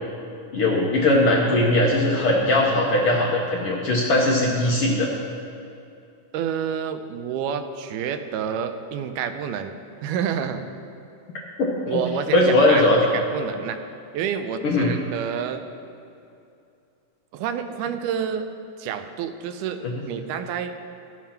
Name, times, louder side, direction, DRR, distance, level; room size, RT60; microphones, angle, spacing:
voice 1, 0.5-5.1 11.6-12.0 12.3-13.0 14.6-14.9 19.8-19.9, left 1 dB, 70° left, -3 dB, 1.3 m, -19 dB
voice 2, 6.3-9.7 10.0-10.7 11.9-13.8 14.1-15.6 17.3-18.5 18.8-19.8 20.1-20.7, right 8 dB, 80° right, 8 dB, 2.0 m, -29 dB
12.5 x 7.4 x 5.7 m, 2.6 s
omnidirectional pair, 3.9 m